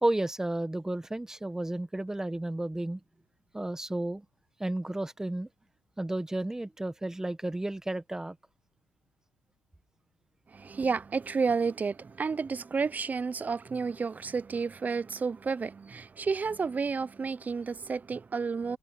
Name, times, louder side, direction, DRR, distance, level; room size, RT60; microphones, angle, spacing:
voice 1, 0.0-3.0 3.5-4.2 4.6-5.5 6.0-8.4, right 1 dB, 10° right, 1.6 m, -32 dB
voice 2, 10.5-18.8, right 5 dB, 25° right, 0.6 m, -31 dB
cardioid pair, 95°, 6 cm